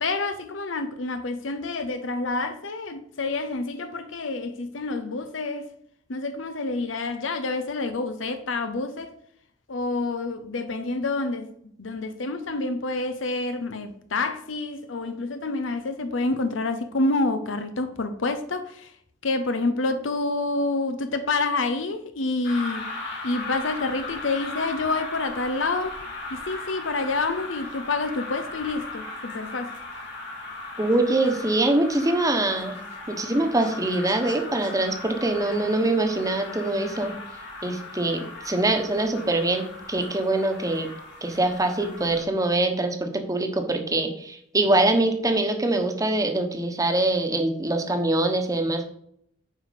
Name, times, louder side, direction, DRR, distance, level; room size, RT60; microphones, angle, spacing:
voice 1, 0.0-5.7 6.1-9.1 9.7-11.5 11.8-18.9 19.2-22.9 23.2-26.0 26.3-29.8, left 3 dB, 85° left, 0.8 m, -28 dB
sound 1, 22.4-42.2, left 2 dB, 65° left, 3.3 m, -38 dB
voice 2, 30.8-32.8 33.1-37.1 37.6-40.9 41.2-48.9, right 2 dB, 20° right, 1.1 m, -24 dB
9.3 x 4.9 x 5.1 m
head